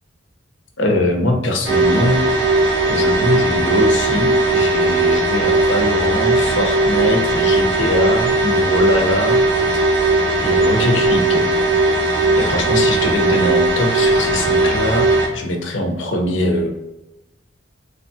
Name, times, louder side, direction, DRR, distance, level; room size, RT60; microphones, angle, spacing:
voice 1, 0.8-2.2 2.9-9.4 9.7-9.8 10.4-11.5 12.4-15.1 15.3-16.7, left 1 dB, 85° left, 1 dB, 0.8 m, -21 dB
sound 1, 1.6-15.3, right 2 dB, 75° right, 1.3 m, -17 dB
3.4 x 3.3 x 2.8 m, 0.97 s
head